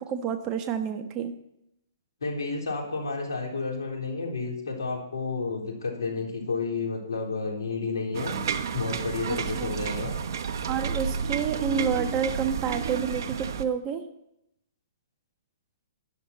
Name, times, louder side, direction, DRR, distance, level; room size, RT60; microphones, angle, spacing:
voice 1, 0.0-1.3 9.3-9.7 10.7-14.0, right 7 dB, 30° right, 7 dB, 1.3 m, -29 dB
voice 2, 2.2-8.4 8.7-10.1, left 4 dB, 80° left, 1 dB, 3.8 m, -31 dB
sound 1, 8.1-13.6, right 6 dB, 65° right, 1.0 m, -31 dB
12.5 x 10.5 x 4.2 m, 0.79 s
hypercardioid pair, 130°, 2 cm